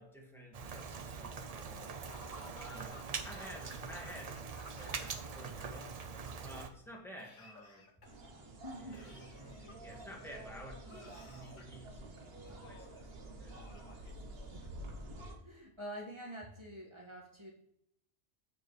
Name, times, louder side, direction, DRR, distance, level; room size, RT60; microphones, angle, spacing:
voice 1, 0.0-6.0 6.4-7.9 8.8-9.1 9.8-12.0 12.7-13.0 13.4-14.1, equal, ahead, -1 dB, 1.9 m, -52 dB
Rain, 0.5-6.7, right 5 dB, 45° right, 0.6 m, -43 dB
Laughter / Cough, 2.1-5.4 5.6-6.5 7.2-8.3 8.9-10.1 10.9-11.8 12.4-13.0 13.5-14.7, left 3 dB, 45° left, 1.2 m, -57 dB
sound 1, 8.0-15.4, right 1 dB, 65° right, 1.3 m, -49 dB
voice 2, 8.6-9.0 14.5-14.7 15.4-17.5, equal, 25° right, -3 dB, 2.1 m, -46 dB
15.0 x 5.1 x 3.2 m, 0.75 s
omnidirectional pair, 1.1 m